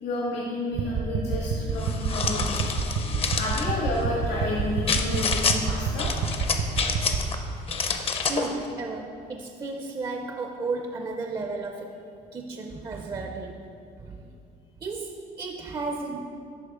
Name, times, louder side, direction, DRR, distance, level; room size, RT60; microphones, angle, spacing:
voice 1, 0.0-2.6 3.3-6.2, left 1 dB, 75° left, -5 dB, 1.4 m, -30 dB
sound 1, 0.7-7.2, right 4 dB, 65° right, 0.7 m, -29 dB
sound 2, 1.8-3.7 4.9-5.6 6.0-7.4 7.7-8.5, left 5 dB, 35° left, 0.5 m, -28 dB
voice 2, 8.3-12.0 12.3-13.7 14.0-14.3 14.8-16.3, right 3 dB, 25° right, 3 dB, 0.4 m, -33 dB
10.5 x 4.0 x 3.6 m, 2.5 s
cardioid pair, 110°, 17 cm